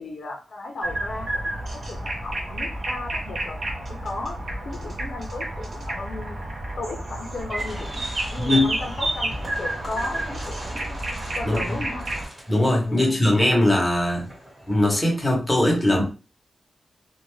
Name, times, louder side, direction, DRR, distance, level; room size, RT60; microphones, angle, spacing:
voice 1, 0.0-4.4 4.6-6.4 6.8-11.0 11.3-12.1 12.9-13.2, left 2 dB, 60° left, 1 dB, 0.5 m, -35 dB
sound 1, 0.8-12.3, right 1 dB, 50° right, 0.7 m, -30 dB
sound 2, 7.5-15.2, equal, 20° right, 1.1 m, -42 dB
voice 2, 8.4-8.7 11.4-11.7 12.5-14.3 14.7-16.0, left 1 dB, 10° left, -1 dB, 0.9 m, -20 dB
2.5 x 2.2 x 3.1 m, 0.34 s
wide cardioid pair, 155°, 0 cm